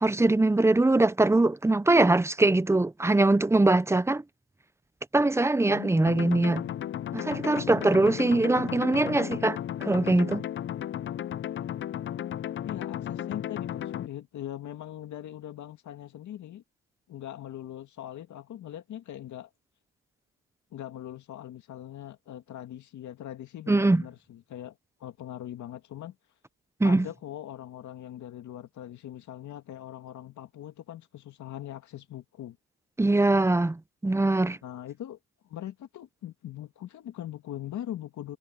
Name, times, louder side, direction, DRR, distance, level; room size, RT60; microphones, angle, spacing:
voice 1, 0.0-4.2 5.1-6.6 7.1-10.5 23.7-24.0 26.8-27.1 33.0-34.6, right 2 dB, 10° right, 0.7 m, -22 dB
voice 2, 5.7-6.3 12.7-16.6 17.1-19.5 20.7-26.2 26.8-32.6 34.6-35.2 35.4-38.4, left 12 dB, 70° left, 2.1 m, -41 dB
sound 1, 6.1-14.1, left 10 dB, 40° left, 0.4 m, -34 dB
cardioid pair, 90°, 30 cm